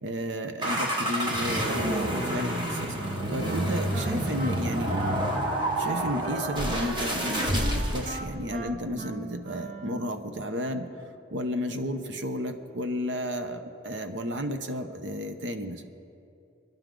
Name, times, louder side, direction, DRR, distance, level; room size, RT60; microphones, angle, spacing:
voice 1, 0.0-4.9 5.8-10.9 11.3-15.8, equal, 80° right, 7 dB, 0.9 m, -32 dB
sound 1, 0.6-8.2, right 1 dB, 25° right, 1.4 m, -28 dB
Wind instrument woodwind instrument, 3.0-10.4, right 2 dB, 45° right, 0.8 m, -40 dB
28.0 x 11.0 x 3.9 m, 2.7 s
head